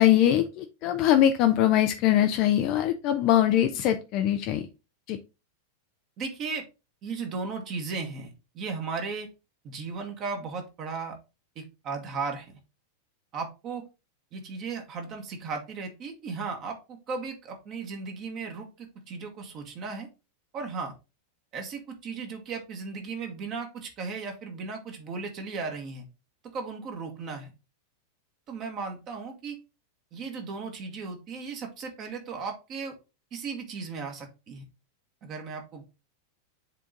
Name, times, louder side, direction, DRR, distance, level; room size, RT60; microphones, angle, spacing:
voice 1, 0.0-4.6 5.1-5.2, left 12 dB, 40° left, 7 dB, 0.6 m, -22 dB
voice 2, 6.2-6.6 7.0-9.3 9.6-11.2 11.5-12.6 13.3-13.8 14.3-20.1 20.5-20.9 21.5-26.0 26.5-27.5 28.5-29.6 30.1-33.0 33.3-34.6 35.2-35.8, right 4 dB, 35° right, 3 dB, 1.6 m, -36 dB
7.5 x 3.8 x 3.8 m, 0.28 s
figure-of-eight pair, 90°, 0 cm